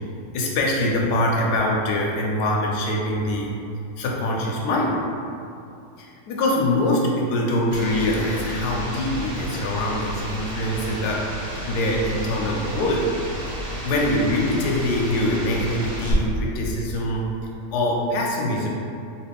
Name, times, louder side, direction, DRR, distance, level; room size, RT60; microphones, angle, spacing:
voice 1, 0.3-3.5 4.0-5.0 6.0-11.3 11.7-13.0 13.6-17.3 17.7-18.7, left 1 dB, 75° left, -2 dB, 1.1 m, -23 dB
sound 1, 7.7-16.1, equal, 60° right, 1.3 m, -32 dB
3.0 x 2.7 x 3.4 m, 2.6 s
omnidirectional pair, 1.9 m